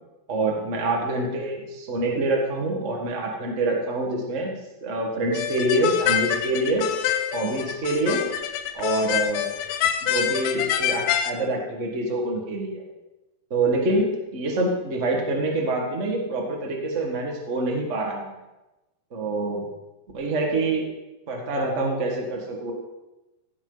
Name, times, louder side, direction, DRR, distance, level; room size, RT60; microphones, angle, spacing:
voice 1, 0.3-6.8 7.3-8.3 8.7-9.5 10.0-12.8 13.5-18.3 19.1-19.6 20.1-20.8 21.3-22.7, right 2 dB, 65° right, 0 dB, 0.7 m, -26 dB
sound 1, 5.3-11.3, left 10 dB, 80° left, 2.4 m, -26 dB
16.0 x 8.7 x 4.0 m, 1.0 s
omnidirectional pair, 4.3 m